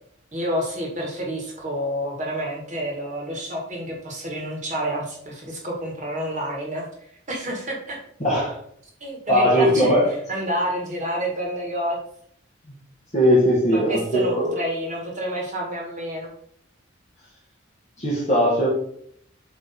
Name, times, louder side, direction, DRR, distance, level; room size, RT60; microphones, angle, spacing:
voice 1, 0.3-6.9 7.3-8.0 9.0-9.9 10.3-12.0 13.7-16.3, right 1 dB, 35° right, -1 dB, 1.7 m, -29 dB
voice 2, 8.2-8.6 9.3-10.1 13.1-14.5 18.0-18.7, equal, 35° left, -8 dB, 1.8 m, -19 dB
7.7 x 3.2 x 4.3 m, 0.66 s
head